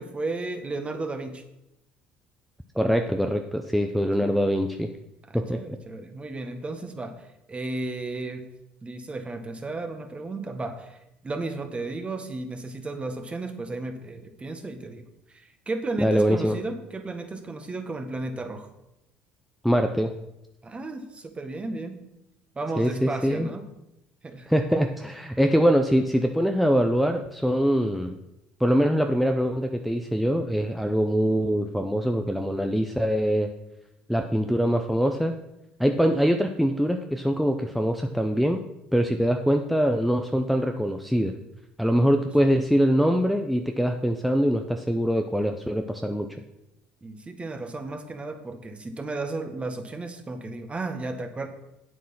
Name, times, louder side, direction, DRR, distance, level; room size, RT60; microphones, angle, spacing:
voice 1, 0.0-1.4 4.2-4.3 5.3-8.5 8.8-18.7 20.6-22.0 22.5-23.6 24.2-24.5 47.0-51.5, right 2 dB, 25° right, 7 dB, 1.7 m, -34 dB
voice 2, 2.8-4.9 5.3-5.8 16.0-16.6 19.6-20.1 22.8-23.5 24.5-28.2 28.6-33.5 34.1-35.4 35.8-38.6 38.9-41.3 41.8-46.3, equal, ahead, 4 dB, 0.8 m, -23 dB
8.5 x 7.9 x 6.0 m, 0.89 s
hypercardioid pair, 65°, 5 cm